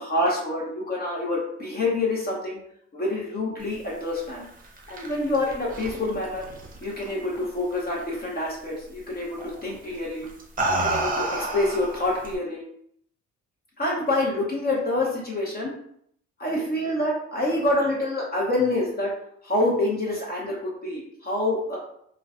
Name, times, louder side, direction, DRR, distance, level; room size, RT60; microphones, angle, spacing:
voice 1, 0.0-2.6 2.9-4.5 4.9-6.4 6.8-10.2 10.7-12.6 13.8-15.7 16.4-19.1 19.4-21.8, left 2 dB, 30° left, -4 dB, 0.7 m, -27 dB
sound 1, 4.5-7.4 7.7-8.1 9.4-9.6 10.2-12.4, right 2 dB, 30° right, 0.6 m, -29 dB
2.3 x 2.2 x 2.4 m, 0.69 s
cardioid pair, 90°, 30 cm